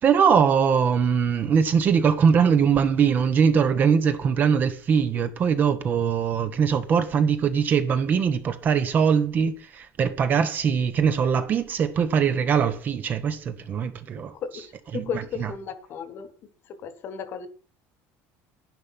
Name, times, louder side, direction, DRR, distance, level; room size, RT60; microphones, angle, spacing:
voice 1, 0.0-14.3 14.9-15.5, right 7 dB, 30° right, 1.3 m, -22 dB
voice 2, 15.1-16.3 16.8-17.5, left 7 dB, 35° left, 1.6 m, -34 dB
11.5 x 10.5 x 5.9 m
cardioid pair, 175°, 6 cm